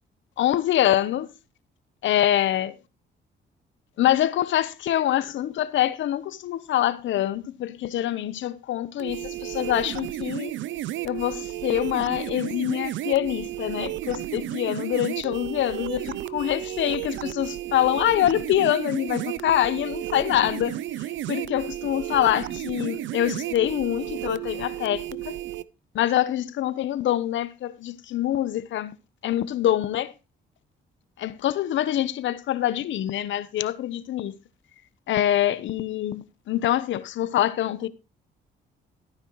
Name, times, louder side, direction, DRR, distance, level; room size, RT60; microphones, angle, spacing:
voice 1, 0.4-1.3 2.0-2.8 4.0-10.5 11.0-20.8 21.3-25.4 25.9-29.0 29.2-30.1 31.2-34.3 35.1-37.9, left 12 dB, 75° left, 0.9 m, -25 dB
sound 1, 9.0-25.6, right 14 dB, 75° right, 0.5 m, -33 dB
14.0 x 9.7 x 3.1 m
cardioid pair, 90°, 20 cm